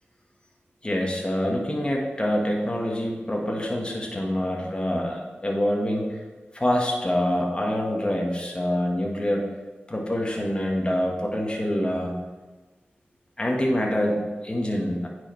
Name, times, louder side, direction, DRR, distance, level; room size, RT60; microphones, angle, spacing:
voice 1, 0.8-6.2 6.5-9.5 9.9-12.2 13.4-15.1, equal, 25° left, -1 dB, 1.4 m, -26 dB
9.7 x 4.9 x 3.2 m, 1.2 s
wide cardioid pair, 60°, 4 cm